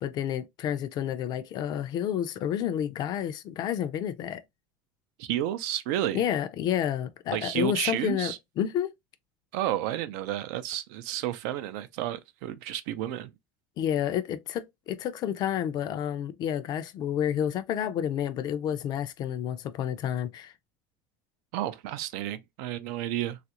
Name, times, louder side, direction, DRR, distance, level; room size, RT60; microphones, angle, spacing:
voice 1, 0.0-4.4 6.1-8.9 13.8-20.5, left 10 dB, 45° left, 0.4 m, -30 dB
voice 2, 5.2-6.2 7.3-8.4 9.5-13.3 21.5-23.4, right 12 dB, 75° right, 0.5 m, -31 dB
3.2 x 2.4 x 2.8 m
supercardioid pair, 130°, 10 cm